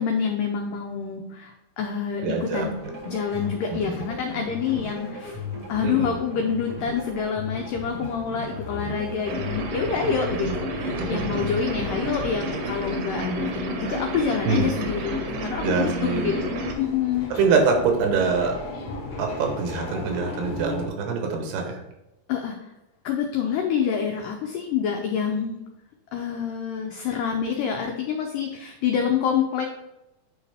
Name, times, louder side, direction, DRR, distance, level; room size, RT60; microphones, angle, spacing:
voice 1, 0.0-2.8 3.1-5.4 5.7-17.3 22.3-22.6 23.0-25.6 26.1-29.7, left 7 dB, 90° left, 3 dB, 1.9 m, -27 dB
voice 2, 2.2-2.7 3.7-4.0 5.8-6.2 10.4-10.6 11.0-11.4 14.5-14.7 15.6-16.3 17.3-18.6 19.2-21.8, right 5 dB, 85° right, 2 dB, 3.2 m, -24 dB
sound 1, 2.3-20.9, left 2 dB, 65° left, 1.6 m, -38 dB
sound 2, 2.8-12.4, left 1 dB, 50° right, 1.0 m, -36 dB
sound 3, 9.3-16.7, right 1 dB, 70° right, 2.0 m, -31 dB
8.7 x 4.7 x 3.4 m, 0.93 s
omnidirectional pair, 4.6 m